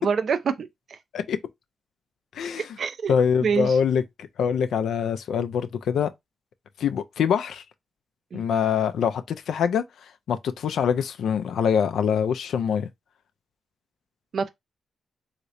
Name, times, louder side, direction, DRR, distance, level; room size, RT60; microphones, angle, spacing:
voice 1, 0.0-1.0 2.8-3.8 8.3-8.5 14.3-14.5, right 6 dB, 65° right, 0.5 m, -27 dB
voice 2, 2.3-2.7 3.1-6.1 6.8-7.6 8.3-9.8 10.3-12.9, left 7 dB, 80° left, 0.4 m, -24 dB
3.1 x 2.8 x 2.5 m
cardioid pair, 60°, 0 cm